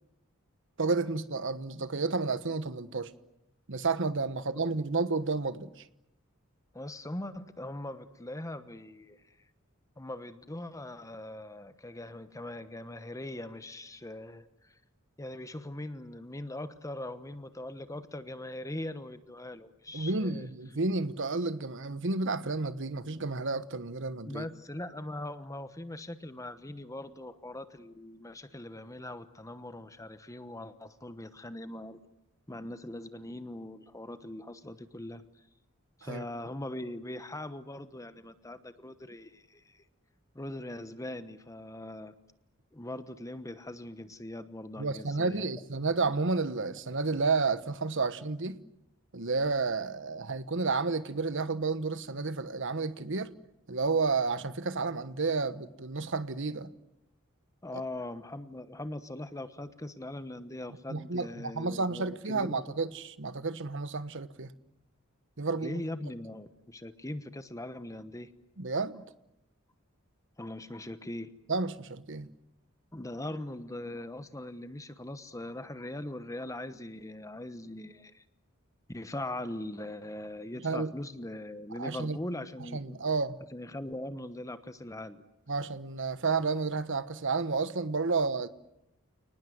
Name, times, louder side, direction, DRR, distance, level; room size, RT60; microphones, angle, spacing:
voice 1, 0.8-3.1 3.7-5.8 19.9-24.5 36.0-36.2 44.8-48.6 49.1-53.3 53.7-56.7 57.7-57.8 60.9-64.5 65.4-65.8 68.6-69.0 71.5-72.3 80.6-80.9 81.7-82.2 82.6-83.4 85.5-88.5, right 4 dB, 65° right, 1.3 m, -31 dB
voice 2, 6.7-9.3 10.0-14.7 15.2-20.5 24.3-32.0 32.5-35.2 36.0-39.8 40.3-42.1 42.7-45.5 57.6-62.5 65.6-68.3 70.4-71.3 72.9-78.2 78.9-82.9 83.5-85.2, left 1 dB, 15° left, 1.1 m, -41 dB
29.5 x 19.5 x 9.5 m
head